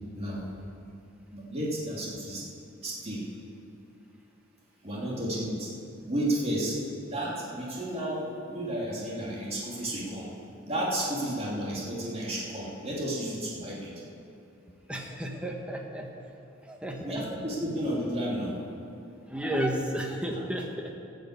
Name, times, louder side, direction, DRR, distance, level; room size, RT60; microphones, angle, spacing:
voice 1, 1.3-2.4 2.8-3.3 4.8-5.7 6.0-6.8 7.0-10.3 10.6-13.9 17.0-18.5, right 1 dB, 30° right, -5 dB, 2.8 m, -32 dB
voice 2, 14.9-16.1 16.6-17.3 19.3-20.9, equal, 5° right, 1 dB, 1.3 m, -32 dB
15.0 x 6.7 x 8.3 m, 2.7 s
head